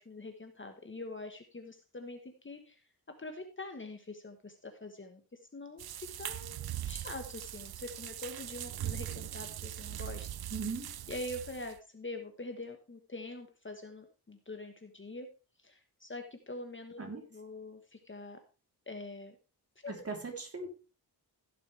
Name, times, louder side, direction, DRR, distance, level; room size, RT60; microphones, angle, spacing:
voice 1, 0.0-2.8 3.2-10.3 11.1-15.3 15.6-18.4 18.9-19.4 19.8-20.0, left 2 dB, 30° left, 6 dB, 1.4 m, -44 dB
sound 1, 5.8-11.8, right 12 dB, 65° right, 0.6 m, -41 dB
voice 2, 10.5-10.9 17.0-17.2 20.0-20.7, right 4 dB, 35° right, 1 dB, 3.4 m, -38 dB
16.0 x 6.8 x 3.4 m, 0.32 s
wide cardioid pair, 105°, 41 cm